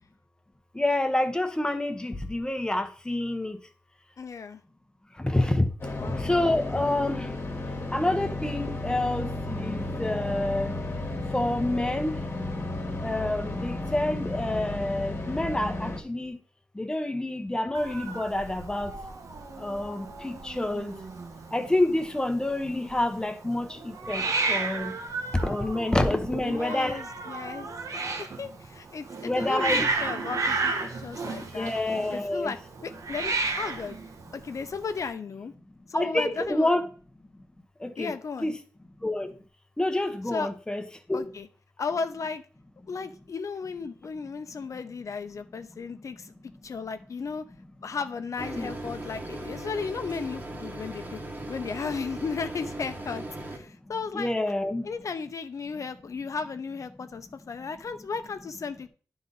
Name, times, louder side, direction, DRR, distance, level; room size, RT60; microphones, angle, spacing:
voice 1, 0.7-3.6 5.1-7.3 7.9-10.7 11.3-12.2 13.0-16.4 16.7-19.0 19.6-21.0 21.5-24.9 25.4-27.0 29.2-29.9 31.4-32.5 35.9-36.8 37.8-38.1 38.4-38.5 39.0-39.3 39.8-40.8 41.1-41.2 48.5-48.7 54.1-54.9, left 1 dB, 15° left, 7 dB, 0.9 m, -28 dB
voice 2, 4.2-4.6 6.0-6.2 26.4-31.7 32.1-32.6 32.8-34.0 34.3-35.5 35.9-36.7 38.0-38.5 40.3-40.5 41.1-41.5 41.8-42.4 42.9-46.3 46.6-47.5 47.8-51.2 51.5-54.3 54.8-58.9, left 5 dB, 60° left, 9 dB, 0.7 m, -35 dB
sound 1, 5.8-16.0, left 2 dB, 40° left, 1.4 m, -33 dB
Hiss, 17.7-35.1, right 3 dB, 65° right, 1.1 m, -33 dB
sound 2, 48.4-53.6, right 1 dB, 35° right, 1.3 m, -38 dB
11.0 x 3.9 x 4.0 m, 0.41 s
wide cardioid pair, 130°, 6 cm